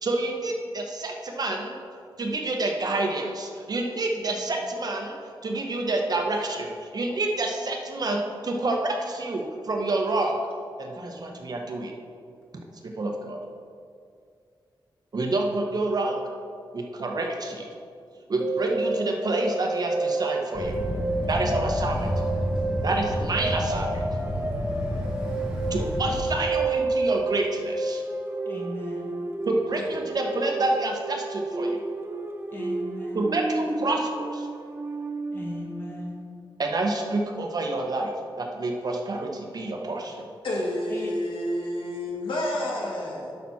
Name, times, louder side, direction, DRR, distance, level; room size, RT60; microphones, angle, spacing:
voice 1, 0.0-1.8 2.2-5.1 5.4-10.4 10.8-11.9 12.8-13.4 15.1-16.2 16.7-17.7 18.3-20.8 21.3-22.1 22.8-24.0 25.7-28.0 29.5-31.8 33.1-34.5 36.6-40.3, right 2 dB, 50° right, 2 dB, 1.0 m, -28 dB
sound 1, 18.4-35.8, right 3 dB, 25° right, 0.7 m, -31 dB
sound 2, 20.5-26.2, equal, 10° right, 1.9 m, -30 dB
voice 2, 28.5-29.1 32.5-33.3 35.3-36.2 40.9-41.1, left 1 dB, 25° left, -3 dB, 1.8 m, -37 dB
voice 3, 40.4-43.3, left 1 dB, 80° left, -3 dB, 2.0 m, -29 dB
11.0 x 5.9 x 4.2 m, 2.4 s
wide cardioid pair, 125°, 9 cm